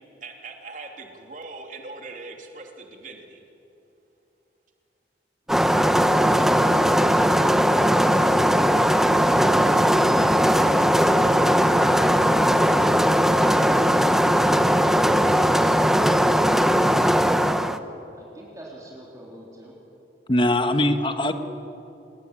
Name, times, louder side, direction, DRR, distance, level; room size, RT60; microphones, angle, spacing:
voice 1, 0.2-3.4, right 3 dB, 45° right, 3 dB, 3.0 m, -40 dB
sound 1, 5.5-17.8, equal, ahead, 0.8 m, -19 dB
voice 2, 18.1-19.8, right 1 dB, 20° right, -3 dB, 3.5 m, -42 dB
voice 3, 20.3-21.3, left 1 dB, 25° left, 8 dB, 1.4 m, -21 dB
28.0 x 20.0 x 9.1 m, 2.8 s
head